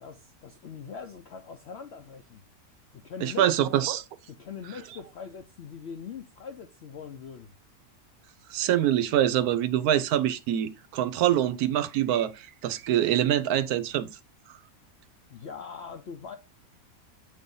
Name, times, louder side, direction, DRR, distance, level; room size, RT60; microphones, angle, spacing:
voice 1, 0.0-2.4 2.9-3.7 4.3-7.5 15.3-16.4, left 6 dB, 60° left, 0.8 m, -42 dB
voice 2, 3.2-4.0 8.5-14.1, right 11 dB, 80° right, 1.1 m, -25 dB
7.4 x 2.7 x 5.4 m
omnidirectional pair, 1.6 m